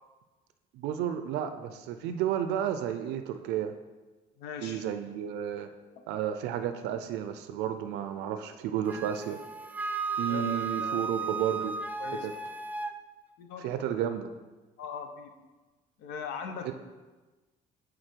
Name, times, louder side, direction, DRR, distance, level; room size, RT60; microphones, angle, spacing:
voice 1, 0.7-3.7 4.6-5.7 6.1-9.4 10.2-11.8 12.1-12.3 13.6-14.3 16.6-16.7, right 9 dB, 90° right, 9 dB, 0.5 m, -32 dB
voice 2, 4.4-4.9 10.3-11.1 11.6-11.7 12.0-12.3 13.4-13.8 14.8-15.5 16.0-16.7, left 6 dB, 90° left, 6 dB, 0.8 m, -40 dB
Wind instrument woodwind instrument, 8.9-13.0, right 4 dB, 10° right, 0.4 m, -34 dB
7.7 x 4.0 x 4.5 m, 1.2 s
cardioid pair, 110°, 17 cm